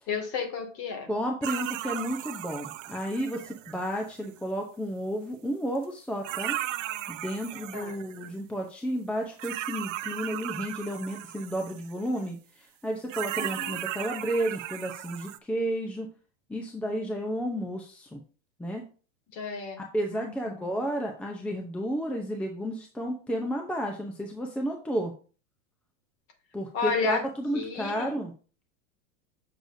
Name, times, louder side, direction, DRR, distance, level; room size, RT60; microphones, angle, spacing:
voice 1, 0.1-1.1 7.7-7.9 13.4-13.8 19.3-19.8 20.1-20.8 26.7-27.2 27.5-28.1, left 5 dB, 40° left, 4 dB, 2.2 m, -32 dB
voice 2, 1.1-6.6 7.1-16.1 16.5-18.2 18.6-18.8 19.8-25.1 26.5-28.3, equal, 5° left, 2 dB, 0.6 m, -32 dB
sound 1, 1.4-4.3 5.8-5.9 6.2-8.3 9.4-12.3 13.1-15.4, right 14 dB, 85° right, 0.7 m, -36 dB
7.9 x 6.6 x 2.6 m, 0.37 s
supercardioid pair, 150°, 37 cm